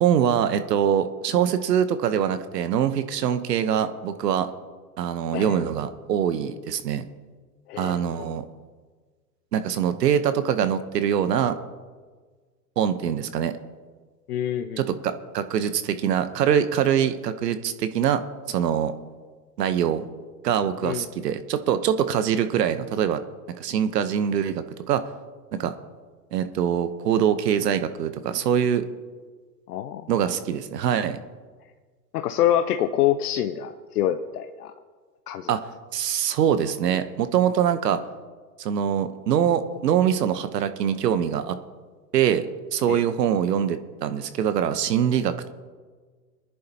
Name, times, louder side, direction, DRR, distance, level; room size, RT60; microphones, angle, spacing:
voice 1, 0.0-4.5 5.0-7.0 7.8-8.4 9.5-11.5 12.8-13.5 14.8-18.2 18.5-18.9 19.6-20.0 20.4-23.2 23.6-25.0 25.5-25.7 26.3-28.8 30.1-31.2 35.5-35.6 35.9-38.0 38.6-41.6 42.1-42.5 42.7-45.5, right 9 dB, 70° right, 11 dB, 1.1 m, -23 dB
voice 2, 7.7-8.0 14.3-14.8 20.8-21.0 29.7-30.1 32.1-34.7 35.3-35.5 42.9-43.0, left 11 dB, 65° left, 8 dB, 0.8 m, -26 dB
23.0 x 10.5 x 2.9 m, 1.5 s
hypercardioid pair, 105°, 50 cm